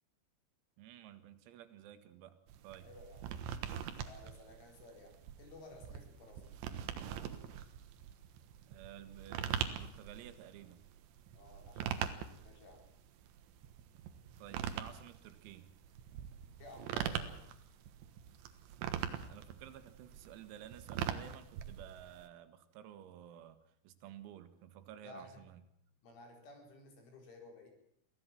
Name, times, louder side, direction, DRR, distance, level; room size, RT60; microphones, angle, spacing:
voice 1, 0.8-2.4 2.6-2.9 8.7-10.8 14.4-15.7 19.1-25.6, right 11 dB, 85° right, 10 dB, 4.2 m, -53 dB
sound 1, 2.5-22.3, right 9 dB, 70° right, 3.3 m, -42 dB
voice 2, 2.8-3.3 4.0-6.5 11.4-12.1 12.4-12.9 16.6-17.4 25.0-25.4 26.0-27.7, left 2 dB, 65° left, 3 dB, 7.0 m, -55 dB
24.0 x 16.5 x 7.6 m, 0.72 s
omnidirectional pair, 6.0 m